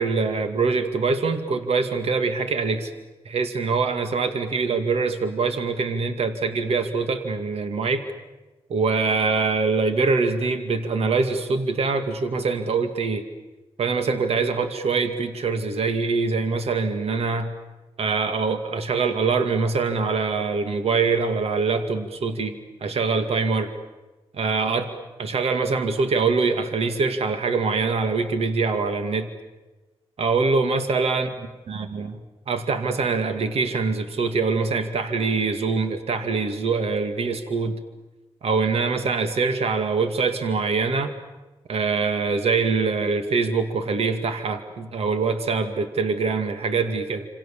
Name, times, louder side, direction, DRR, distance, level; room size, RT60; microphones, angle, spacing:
voice 1, 0.0-2.9 3.3-8.1 8.7-13.2 13.8-17.5 18.0-22.5 22.8-23.7 24.3-24.9 25.2-29.3 30.2-31.3 31.7-32.1 32.5-37.7 38.4-41.1 41.7-47.3, right 4 dB, 85° right, 8 dB, 2.3 m, -24 dB
27.5 x 27.5 x 7.4 m, 1.1 s
wide cardioid pair, 110°, 10 cm